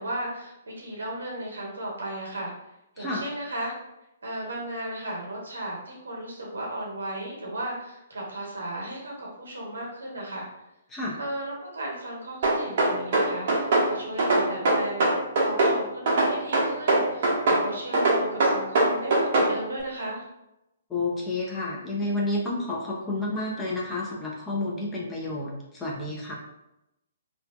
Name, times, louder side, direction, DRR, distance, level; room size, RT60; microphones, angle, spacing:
voice 1, 0.0-2.5 3.0-3.7 4.2-10.5 11.2-15.1 15.4-17.3 17.6-20.2, right 1 dB, 70° right, -3 dB, 0.9 m, -35 dB
sound 1, 12.4-13.9 14.2-15.8 16.1-17.6 17.9-19.5, right 2 dB, 50° right, 0.7 m, -21 dB
voice 2, 20.9-26.3, left 2 dB, 10° left, -4 dB, 0.5 m, -30 dB
2.5 x 2.2 x 2.3 m, 0.89 s
figure-of-eight pair, 125°, 0 cm